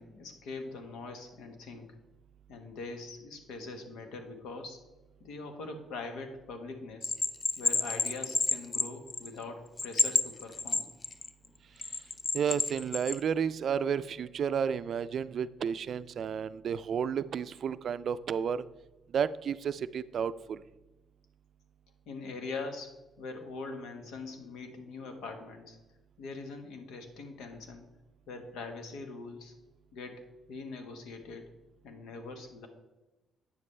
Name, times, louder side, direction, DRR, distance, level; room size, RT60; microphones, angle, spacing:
voice 1, 0.0-1.9 2.5-4.8 5.2-7.1 7.6-10.9 22.1-25.8 26.2-27.8 28.3-29.5 29.9-30.2 30.5-31.4 31.8-32.7, left 3 dB, 85° left, 6 dB, 1.3 m, -42 dB
Bell, 7.0-9.4 9.8-11.3 11.8-13.2, left 3 dB, 35° left, 0.5 m, -29 dB
voice 2, 12.3-18.6 19.1-20.6, right 7 dB, 60° right, 14 dB, 0.4 m, -32 dB
9.3 x 7.1 x 3.3 m, 1.1 s
cardioid pair, 90°, 0 cm